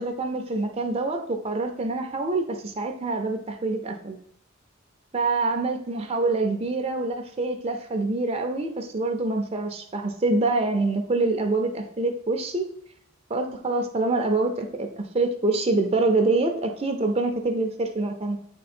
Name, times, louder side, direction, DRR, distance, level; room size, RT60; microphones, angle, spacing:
voice 1, 0.0-4.2 5.1-12.7 13.3-18.4, right 2 dB, 30° right, 5 dB, 0.5 m, -25 dB
8.4 x 3.8 x 4.2 m, 0.71 s
head